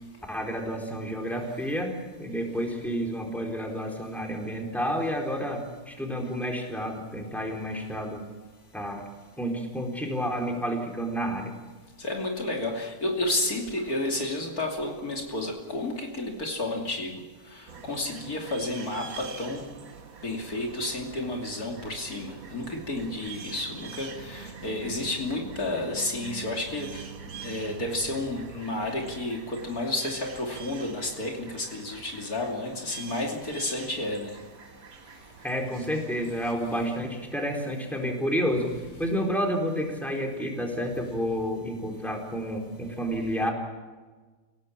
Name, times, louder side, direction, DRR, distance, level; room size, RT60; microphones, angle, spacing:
voice 1, 0.3-8.2 8.7-9.0 9.4-11.5 35.4-38.7 39.0-43.5, equal, ahead, 1 dB, 4.1 m, -30 dB
voice 2, 12.0-17.1 17.5-19.6 20.2-27.0 27.4-34.4, left 2 dB, 60° left, 1 dB, 3.3 m, -31 dB
sound 1, 17.7-36.5, right 6 dB, 60° right, 1.7 m, -44 dB
28.5 x 17.5 x 7.4 m, 1.3 s
omnidirectional pair, 1.7 m